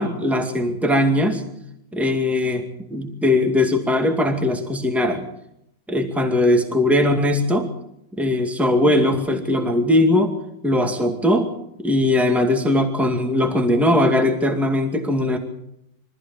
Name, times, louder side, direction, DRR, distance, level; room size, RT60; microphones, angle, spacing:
voice 1, 0.0-1.4 1.9-2.7 2.9-5.3 5.9-7.7 8.1-10.4 10.6-11.5 11.8-15.4, left 1 dB, ahead, 4 dB, 2.1 m, -19 dB
24.5 x 14.5 x 7.3 m, 0.79 s
omnidirectional pair, 2.1 m